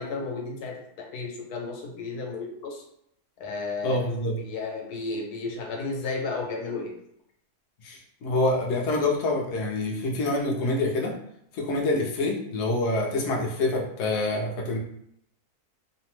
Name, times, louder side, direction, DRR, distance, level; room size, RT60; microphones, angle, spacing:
voice 1, 0.0-2.8 3.4-4.0 4.4-6.9, left 3 dB, 85° left, 1 dB, 1.2 m, -33 dB
voice 2, 3.8-4.4 7.8-11.1 11.5-14.8, left 2 dB, 60° left, -2 dB, 0.7 m, -26 dB
2.8 x 2.0 x 3.0 m, 0.72 s
omnidirectional pair, 1.7 m